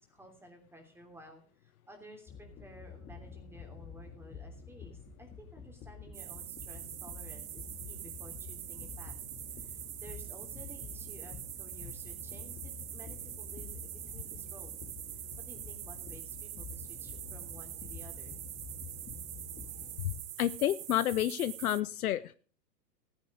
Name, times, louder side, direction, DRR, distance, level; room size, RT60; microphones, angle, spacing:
voice 1, 0.0-9.2 9.5-14.7 15.2-18.4, right 1 dB, 5° right, 3 dB, 3.1 m, -54 dB
sound 1, 2.3-20.2, left 6 dB, 20° left, 2.0 m, -48 dB
sound 2, 6.1-21.8, right 14 dB, 55° right, 0.8 m, -44 dB
voice 2, 20.4-22.2, left 12 dB, 60° left, 16 dB, 0.7 m, -29 dB
15.0 x 9.8 x 5.0 m, 0.41 s
hypercardioid pair, 115°, 49 cm